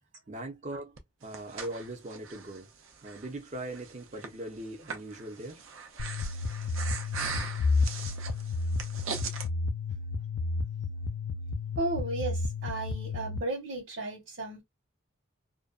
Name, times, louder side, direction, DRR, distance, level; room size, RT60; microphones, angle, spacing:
voice 1, 0.3-2.7 3.0-5.6, right 1 dB, 35° right, 0.6 m, -40 dB
Breathing, 1.0-9.5, right 5 dB, 85° right, 0.6 m, -41 dB
sound 1, 6.0-13.4, left 3 dB, 85° left, 0.3 m, -31 dB
voice 2, 11.8-14.6, right 2 dB, 65° right, 1.1 m, -34 dB
2.5 x 2.1 x 2.3 m
head